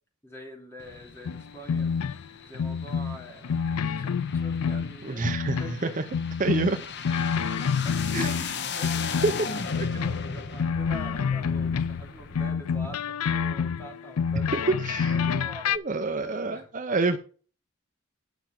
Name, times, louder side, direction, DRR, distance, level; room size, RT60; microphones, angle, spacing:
voice 1, 0.2-2.0 2.4-6.0 6.5-6.6 7.8-8.0 8.2-16.7, equal, 10° left, 0 dB, 2.6 m, -44 dB
sound 1, 0.8-12.5, left 5 dB, 50° left, 0.8 m, -38 dB
sound 2, 1.3-2.3 2.5-5.0 5.2-5.8 6.1-8.6 8.8-12.1 12.4-15.8, left 6 dB, 85° left, 0.4 m, -28 dB
voice 2, 5.0-5.6 6.0-6.1 6.4-6.8 8.1-8.3 9.2-9.3 14.5-15.1 15.7-17.2, right 3 dB, 35° right, 8 dB, 0.6 m, -26 dB
10.0 x 5.8 x 5.8 m, 0.39 s
head